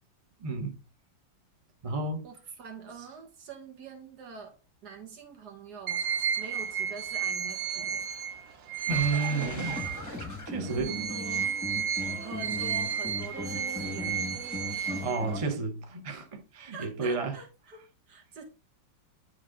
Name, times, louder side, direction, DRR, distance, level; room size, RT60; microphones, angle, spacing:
voice 1, 0.4-0.8 1.8-2.2 7.7-7.9 8.9-9.8 10.5-10.9 15.0-17.4, right 3 dB, 30° right, 0.6 m, -31 dB
voice 2, 2.2-4.6 4.8-6.0 6.4-8.1 10.6-11.6 12.2-14.3 14.7-15.1 16.7-18.4, right 5 dB, 60° right, 1.9 m, -45 dB
sound 1, 5.9-10.2 10.7-15.5, right 8 dB, 80° right, 0.5 m, -33 dB
sound 2, 8.9-15.4, left 2 dB, 10° left, 1.0 m, -38 dB
9.8 x 3.6 x 3.6 m
omnidirectional pair, 2.0 m